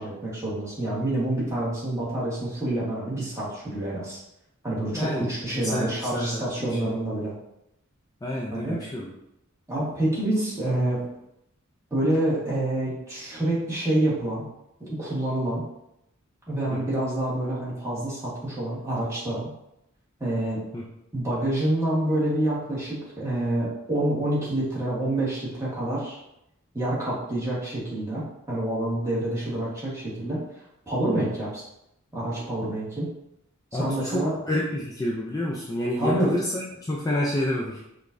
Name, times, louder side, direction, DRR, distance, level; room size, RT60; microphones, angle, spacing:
voice 1, 0.0-4.2 4.6-7.3 8.5-8.8 9.7-11.0 11.9-14.5 14.8-15.6 16.5-19.5 20.2-20.6 21.1-26.2 26.7-30.4 30.9-31.6 32.1-33.1 33.7-34.4 36.0-36.3, right 1 dB, 15° right, -8 dB, 1.2 m, -27 dB
voice 2, 4.9-5.8 6.1-6.7 8.2-9.1 16.7-16.8 20.7-20.8 31.1-31.2 33.7-37.8, left 1 dB, 15° left, -4 dB, 0.3 m, -29 dB
4.9 x 2.3 x 2.5 m, 0.82 s
head